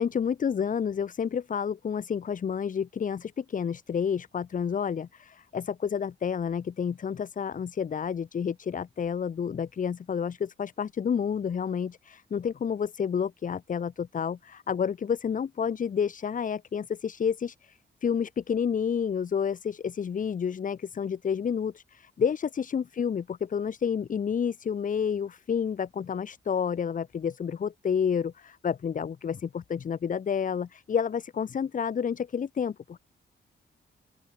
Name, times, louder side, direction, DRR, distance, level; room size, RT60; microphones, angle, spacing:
voice 1, 0.0-33.0, left 7 dB, 40° left, 1.2 m, -30 dB
open air
wide cardioid pair, 180°, 20 cm